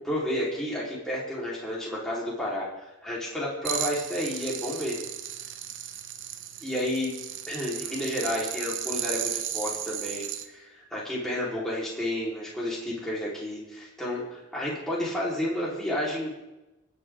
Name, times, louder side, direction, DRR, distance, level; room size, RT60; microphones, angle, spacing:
voice 1, 0.0-2.7 3.0-5.1 6.6-7.1 7.5-16.3, left 1 dB, ahead, -7 dB, 3.8 m, -31 dB
sound 1, 3.7-10.5, right 10 dB, 65° right, 1.0 m, -35 dB
25.5 x 9.2 x 3.7 m, 0.99 s
head